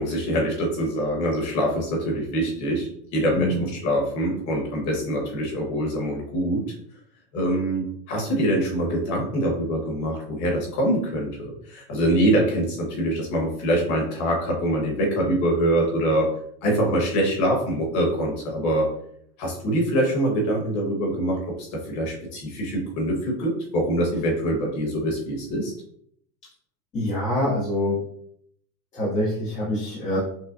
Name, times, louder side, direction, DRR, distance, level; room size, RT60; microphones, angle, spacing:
voice 1, 0.0-6.6 7.3-16.3 16.6-18.9 19.4-25.7, right 1 dB, 35° left, -1 dB, 1.2 m, -24 dB
voice 2, 3.3-3.7 26.9-28.0 28.9-30.2, left 1 dB, 15° left, -7 dB, 0.6 m, -25 dB
5.6 x 2.1 x 2.5 m, 0.68 s
supercardioid pair, 155°, 50 cm